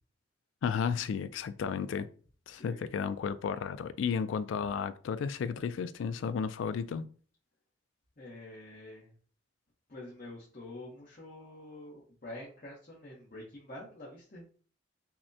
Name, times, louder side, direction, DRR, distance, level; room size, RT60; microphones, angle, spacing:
voice 1, 0.6-2.1 2.5-7.1, left 6 dB, 80° left, 0.3 m, -33 dB
voice 2, 2.5-2.9 8.2-9.1 9.9-14.5, left 1 dB, 45° left, 0.9 m, -47 dB
5.8 x 2.1 x 2.7 m
head